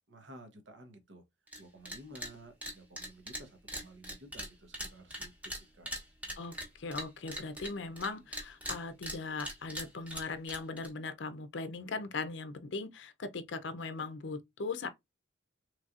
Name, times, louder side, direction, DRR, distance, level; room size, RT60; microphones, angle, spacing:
voice 1, 0.1-1.2 1.6-5.9 6.2-6.6, right 1 dB, 70° right, 1.0 m, -53 dB
sound 1, 1.5-1.6 1.9-2.3 2.6-8.1 8.3-10.9, equal, 10° right, 0.9 m, -41 dB
voice 2, 6.4-14.9, left 4 dB, 65° left, 0.5 m, -39 dB
4.1 x 3.1 x 2.4 m
head